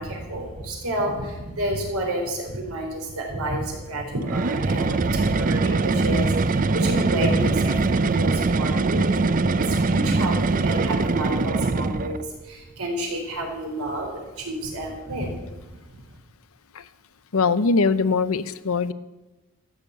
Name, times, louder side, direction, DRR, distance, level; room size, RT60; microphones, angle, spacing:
voice 1, 0.0-15.4 16.0-16.1, right 1 dB, 85° right, 1 dB, 4.1 m, -30 dB
sound 1, 4.2-12.3, right 3 dB, 40° right, 0.5 m, -22 dB
voice 2, 17.3-18.9, left 4 dB, 75° left, 14 dB, 0.7 m, -21 dB
14.0 x 7.1 x 8.3 m, 1.1 s
head